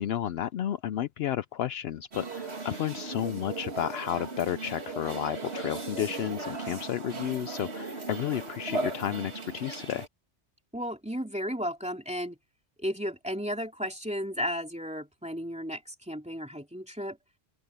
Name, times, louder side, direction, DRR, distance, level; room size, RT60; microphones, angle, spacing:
voice 1, 0.0-10.0, left 10 dB, 70° left, 0.7 m, -32 dB
sound 1, 2.1-10.1, right 3 dB, 70° right, 2.5 m, -37 dB
voice 2, 10.7-12.4 12.8-17.2, equal, 5° right, 3.0 m, -34 dB
open air
omnidirectional pair, 1.2 m